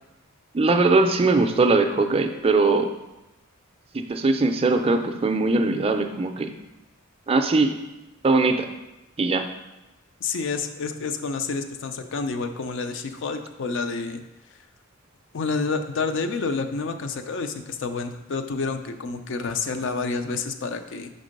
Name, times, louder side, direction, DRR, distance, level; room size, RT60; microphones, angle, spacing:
voice 1, 0.5-2.9 3.9-6.5 7.3-7.7 8.2-8.7 9.2-9.5, right 3 dB, 25° right, 5 dB, 0.4 m, -20 dB
voice 2, 10.2-14.2 15.3-21.1, left 4 dB, 60° left, 8 dB, 0.5 m, -29 dB
5.3 x 3.5 x 5.2 m, 0.97 s
head